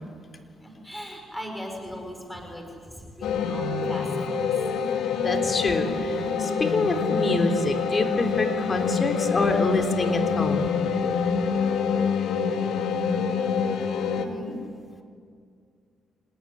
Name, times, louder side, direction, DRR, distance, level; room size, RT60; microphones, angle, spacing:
voice 1, 0.6-2.6 2.9-4.3 14.0-14.5, equal, ahead, 2 dB, 5.1 m, -38 dB
sound 1, 3.2-14.3, left 6 dB, 80° left, 2.2 m, -26 dB
voice 2, 5.2-10.7, left 2 dB, 35° left, 5 dB, 3.6 m, -26 dB
26.5 x 19.0 x 10.0 m, 2.2 s
cardioid pair, 90°, 0 cm